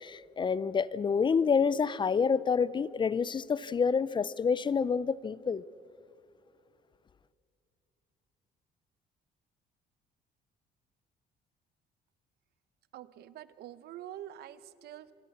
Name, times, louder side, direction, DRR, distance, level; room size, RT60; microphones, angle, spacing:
voice 1, 0.0-5.6, left 6 dB, 30° left, 0.5 m, -28 dB
voice 2, 12.9-15.1, right 12 dB, 70° right, 0.9 m, -46 dB
26.5 x 17.5 x 7.2 m
cardioid pair, 110°, 17 cm